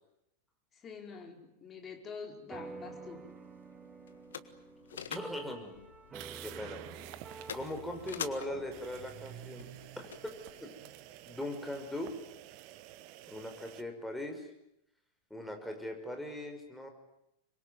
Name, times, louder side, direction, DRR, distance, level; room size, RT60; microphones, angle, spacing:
voice 1, 0.7-3.3, left 5 dB, 25° left, 3 dB, 4.6 m, -46 dB
sound 1, 2.5-11.2, right 4 dB, 20° right, 2.6 m, -50 dB
sound 2, 2.6-10.6, left 8 dB, 65° left, 1.6 m, -48 dB
voice 2, 5.1-5.7 6.4-6.8 7.5-9.7 10.0-10.4 10.6-10.7 11.3-12.1 13.3-14.5 15.3-16.9, left 1 dB, 5° left, 3 dB, 5.7 m, -40 dB
sound 3, 6.1-8.1 8.7-13.8, right 14 dB, 45° right, 1.3 m, -50 dB
26.0 x 22.5 x 9.4 m, 0.81 s
figure-of-eight pair, 90°, 0 cm